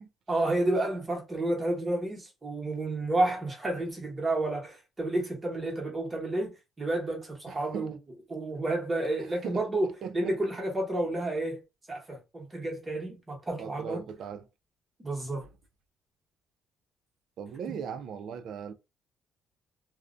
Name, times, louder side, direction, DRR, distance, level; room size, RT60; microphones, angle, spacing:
voice 1, 0.3-7.9 8.3-9.9 10.1-11.6 11.9-14.0 15.0-15.4 17.7-17.8, right 2 dB, 20° right, 1.0 m, -30 dB
voice 2, 7.5-8.0 9.4-10.4 13.6-14.5 15.4-15.5 17.4-18.7, right 7 dB, 60° right, 0.4 m, -39 dB
2.4 x 2.1 x 2.5 m
cardioid pair, 140°, 0 cm